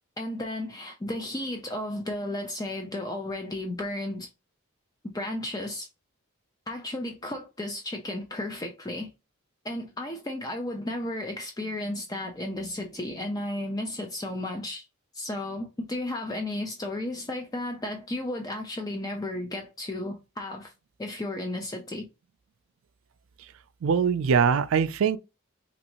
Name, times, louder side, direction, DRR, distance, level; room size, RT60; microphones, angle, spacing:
voice 1, 0.2-4.3 5.0-5.9 6.7-9.1 9.6-14.8 15.1-20.7 21.0-22.1, left 1 dB, 15° left, 0.4 m, -33 dB
voice 2, 23.8-25.2, right 6 dB, 70° right, 0.3 m, -22 dB
3.0 x 2.6 x 2.9 m
head